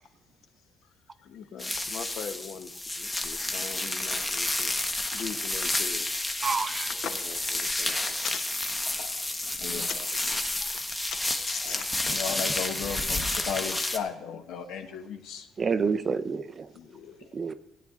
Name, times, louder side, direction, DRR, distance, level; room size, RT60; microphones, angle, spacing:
voice 1, 1.2-6.1 6.7-8.0 8.2-8.4 8.7-8.8 9.7-10.4 11.1-12.0 13.1-13.8 16.7-17.3, left 7 dB, 50° left, 9 dB, 1.1 m, -41 dB
sound 1, 1.6-14.0, left 2 dB, 10° left, 1.0 m, -30 dB
voice 2, 6.4-6.9 15.6-16.7 17.3-17.5, right 5 dB, 25° right, 13 dB, 0.5 m, -28 dB
voice 3, 9.6-9.9 12.1-15.5, left 7 dB, 70° left, 6 dB, 1.4 m, -35 dB
16.0 x 9.6 x 3.7 m, 0.87 s
cardioid pair, 155°, 0 cm